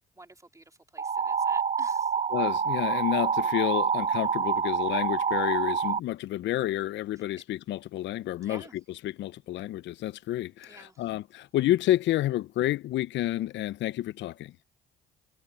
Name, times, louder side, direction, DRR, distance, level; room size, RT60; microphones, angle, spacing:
voice 1, 0.2-0.6 0.9-2.1 8.4-8.7 10.6-11.0, right 2 dB, 15° right, 4.0 m, -50 dB
sound 1, 1.0-6.0, right 6 dB, 35° right, 0.9 m, -27 dB
voice 2, 2.3-14.5, left 14 dB, 60° left, 0.9 m, -30 dB
hypercardioid pair, 55°, 21 cm